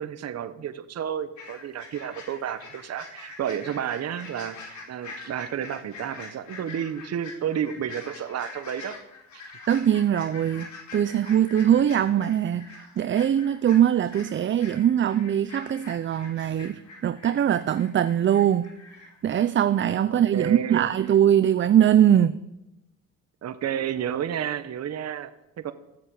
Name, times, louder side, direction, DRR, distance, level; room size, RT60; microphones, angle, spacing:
voice 1, 0.0-9.0 9.3-9.5 20.1-20.9 23.4-25.7, right 9 dB, 55° right, 1.0 m, -31 dB
sound 1, 1.4-19.4 19.7-19.8, left 4 dB, 70° left, 4.1 m, -44 dB
voice 2, 9.7-18.7 19.2-22.3, right 10 dB, 40° right, 0.5 m, -22 dB
14.0 x 7.6 x 8.6 m
cardioid pair, 90°, 30 cm